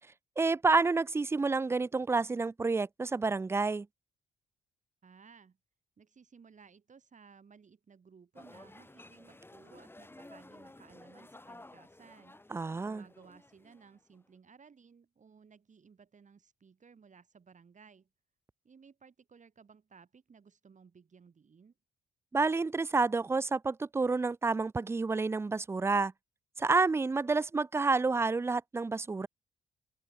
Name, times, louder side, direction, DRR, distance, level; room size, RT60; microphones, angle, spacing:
voice 1, 0.4-3.9 12.5-13.0 22.3-26.1 26.6-29.3, right 3 dB, 15° right, 0.3 m, -29 dB
voice 2, 5.0-5.6 6.0-12.4 12.8-18.1 18.6-21.7, right 6 dB, 45° right, 7.6 m, -58 dB
sound 1, 8.4-14.2, left 2 dB, 10° left, 2.6 m, -54 dB
cardioid pair, 80°, 18 cm